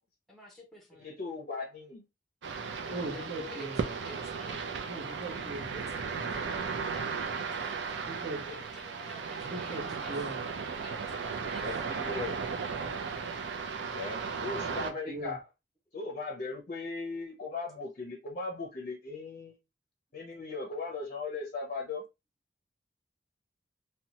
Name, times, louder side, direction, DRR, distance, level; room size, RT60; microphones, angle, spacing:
voice 1, 0.3-1.2 2.8-4.9 5.7-8.3 8.7-10.3 10.8-11.8, left 1 dB, ahead, 0.6 m, -50 dB
voice 2, 1.0-2.0 8.5-8.6 11.6-12.4 13.9-15.4 15.9-19.6 20.1-22.0, left 3 dB, 45° left, 0.5 m, -38 dB
sound 1, 2.4-14.9, right 5 dB, 85° right, 0.5 m, -36 dB
voice 3, 2.9-3.8 4.9-5.7 8.1-8.4 9.5-10.4 14.6-15.4, right 2 dB, 45° right, 0.9 m, -39 dB
2.7 x 2.2 x 2.8 m
head